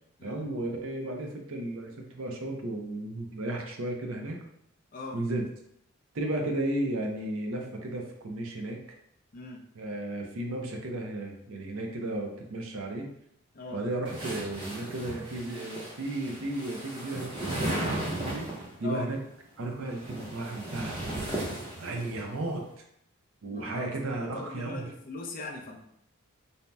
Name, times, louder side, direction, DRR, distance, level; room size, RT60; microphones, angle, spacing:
voice 1, 0.2-4.4 5.1-5.4 6.1-8.8 9.7-13.1 13.7-18.5 18.8-19.2 19.6-21.3 21.8-22.7 23.4-24.9, right 1 dB, 70° right, 2 dB, 0.5 m, -34 dB
sound 1, 14.0-18.7 19.7-22.2, right 1 dB, 25° right, 0.6 m, -36 dB
voice 2, 23.5-23.9 24.3-25.8, left 3 dB, 40° left, 0 dB, 0.4 m, -39 dB
2.7 x 2.1 x 3.3 m, 0.76 s
head